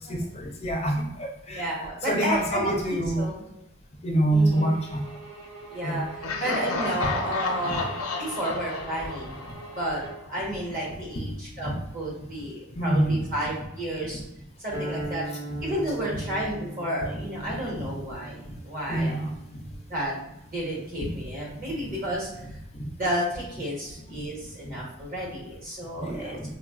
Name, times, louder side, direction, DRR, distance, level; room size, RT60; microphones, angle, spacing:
voice 1, 0.1-1.7 2.1-3.3 4.0-5.2 5.8-6.1 7.7-7.8 11.6-11.7 12.7-13.2 17.5-17.6 18.9-19.3 21.1-21.2 22.8-22.9 26.0-26.4, right 1 dB, 30° left, 1 dB, 0.4 m, -26 dB
voice 2, 1.5-3.4 4.3-4.7 5.7-7.9 8.2-9.4 9.8-14.2 14.6-15.2 15.6-19.2 19.9-20.2 20.5-22.5 23.0-26.4, right 1 dB, 45° right, -4 dB, 1.0 m, -31 dB
sound 1, 4.5-10.3, right 2 dB, 65° right, 0.8 m, -44 dB
Laughter, 6.2-10.1, left 3 dB, 85° left, 0.5 m, -32 dB
sound 2, 14.7-21.1, right 1 dB, 15° right, 0.7 m, -39 dB
3.4 x 2.3 x 2.3 m, 0.83 s
head